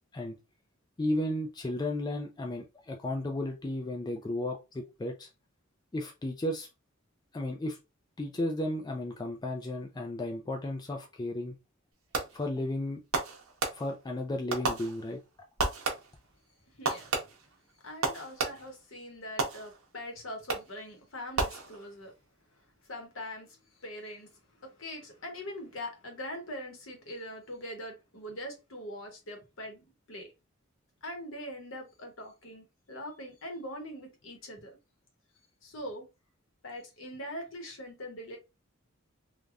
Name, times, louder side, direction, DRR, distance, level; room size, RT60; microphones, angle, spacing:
voice 1, 1.0-5.3 5.9-6.7 7.3-7.8 8.2-11.6 12.3-13.0 13.7-15.2, left 1 dB, 20° left, 0.3 m, -34 dB
Fireworks, 12.1-12.6 13.1-14.1 14.5-15.3 15.6-16.3 16.9-18.8 19.4-20.0 20.5-20.9 21.4-22.1, right 3 dB, 80° right, 0.8 m, -33 dB
voice 2, 16.7-17.2 17.8-22.1 22.9-30.3 31.0-34.7 35.6-36.1 36.6-38.4, left 1 dB, 65° left, 1.0 m, -42 dB
3.2 x 2.2 x 2.4 m
head